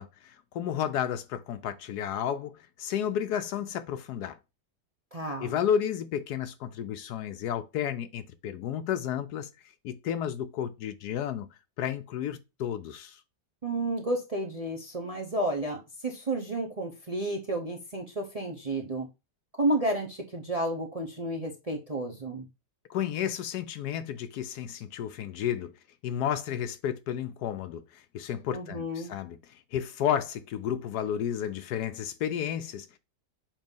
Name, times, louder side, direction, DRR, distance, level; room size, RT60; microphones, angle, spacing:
voice 1, 0.0-4.4 5.4-9.5 9.8-11.5 11.8-13.2 22.9-25.7 26.0-33.0, left 9 dB, 75° left, 1.1 m, -32 dB
voice 2, 5.1-5.6 13.6-19.1 19.6-22.4 28.5-29.1, right 1 dB, 30° right, 0.7 m, -31 dB
7.3 x 2.7 x 5.4 m
omnidirectional pair, 1.8 m